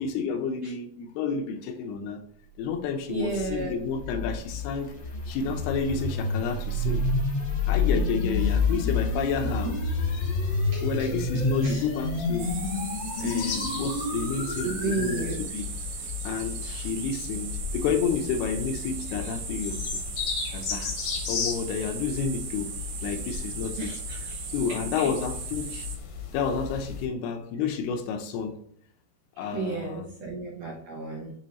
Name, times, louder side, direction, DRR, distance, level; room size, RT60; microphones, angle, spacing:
voice 1, 0.0-2.2 2.6-5.0 5.3-7.1 7.7-9.7 10.8-12.5 13.2-15.7 16.0-20.0 20.5-20.9 21.3-23.9 24.5-25.9 26.3-28.6 29.4-30.1, left 6 dB, 80° left, 2.7 m, -30 dB
voice 2, 3.1-3.8 8.4-8.6 9.4-9.5 10.7-11.1 11.6-11.8 13.9-14.0 14.6-15.4 16.6-16.8 23.8-24.0 24.2-24.5 25.0-25.1 29.4-31.3, right 3 dB, 75° right, 1.6 m, -33 dB
sound 1, 3.2-15.3, left 3 dB, 45° left, 1.2 m, -28 dB
sound 2, 8.3-27.1, left 6 dB, 65° left, 1.8 m, -36 dB
sound 3, 12.4-26.0, right 6 dB, 90° right, 3.4 m, -38 dB
9.9 x 3.6 x 2.9 m
omnidirectional pair, 4.7 m